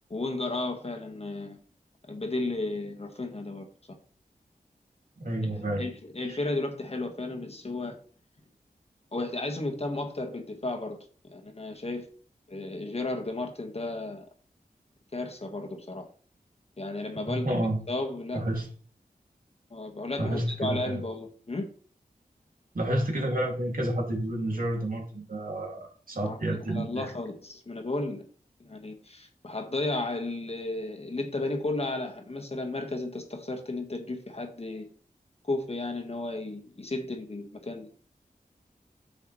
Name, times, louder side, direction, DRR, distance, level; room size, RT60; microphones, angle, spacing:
voice 1, 0.1-1.6 2.1-3.7 5.5-8.0 9.1-11.0 11.2-12.1 12.5-14.3 15.1-16.1 16.8-18.4 19.7-21.7 26.2-28.3 28.6-34.9 35.4-37.9, left 2 dB, 40° left, 1.5 m, -33 dB
voice 2, 5.2-5.9 6.2-6.4 17.3-17.8 18.3-18.7 20.2-21.0 22.7-27.1, right 1 dB, 65° right, 2.5 m, -30 dB
9.5 x 7.0 x 3.2 m
wide cardioid pair, 85°, 16 cm